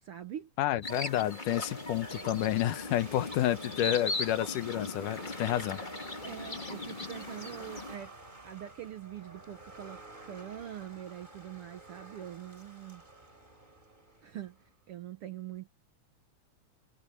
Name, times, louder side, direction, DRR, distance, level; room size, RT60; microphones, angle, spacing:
voice 1, 0.0-0.5 6.2-8.1 8.4-13.0 14.2-14.6 14.9-15.7, right 11 dB, 70° right, 1.4 m, -43 dB
voice 2, 0.6-5.8, left 13 dB, 85° left, 2.5 m, -30 dB
sound 1, 0.8-7.9, left 2 dB, 20° left, 1.8 m, -39 dB
sound 2, 1.7-14.7, right 2 dB, 15° right, 4.6 m, -50 dB
omnidirectional pair, 3.6 m